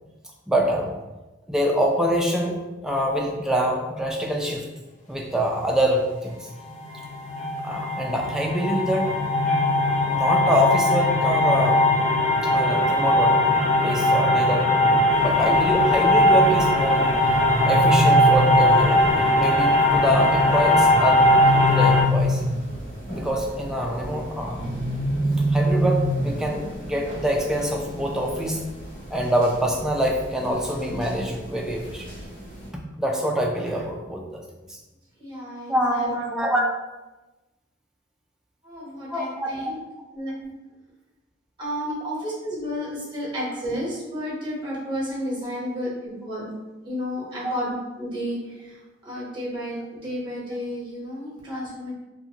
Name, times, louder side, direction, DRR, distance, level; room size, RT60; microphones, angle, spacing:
voice 1, 0.5-0.9 1.5-4.7 5.1-6.5 7.6-9.1 10.0-11.9 12.4-13.4 13.8-17.1 17.6-22.4 23.1-24.6 25.5-28.6 29.1-32.2 33.0-34.4 34.7-34.8 35.7-36.7 39.1-39.7 47.4-47.6, equal, 5° right, 0 dB, 0.3 m, -25 dB
sound 1, 6.7-22.0, left 1 dB, 40° left, 0.6 m, -20 dB
sound 2, 15.1-32.7, equal, 75° left, 1.0 m, -39 dB
sound 3, 17.2-19.2 20.9-22.9 24.6-26.6, equal, 85° right, 0.4 m, -24 dB
voice 2, 35.2-36.2 38.6-39.7 40.1-40.5 41.6-46.5 46.8-48.7 49.0-51.9, equal, 25° right, -7 dB, 1.1 m, -32 dB
2.5 x 2.4 x 2.8 m, 1.1 s
head